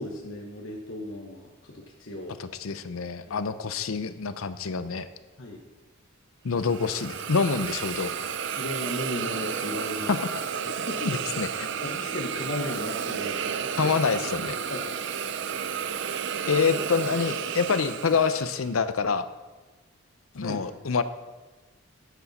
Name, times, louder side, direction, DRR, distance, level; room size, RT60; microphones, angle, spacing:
voice 1, 0.0-2.4 3.2-3.4 5.4-5.6 8.6-10.2 10.9-11.2 11.8-13.9 14.7-14.8 15.7-16.0 20.3-20.6, left 1 dB, 65° left, 0 dB, 1.2 m, -36 dB
voice 2, 2.4-5.1 6.4-8.3 10.1-10.2 11.0-11.7 13.8-14.6 16.5-19.2 20.3-21.0, left 5 dB, 90° left, 12 dB, 0.6 m, -26 dB
Hiss, 6.6-18.7, right 7 dB, 60° right, 0.5 m, -32 dB
11.0 x 8.2 x 4.2 m, 1.3 s
head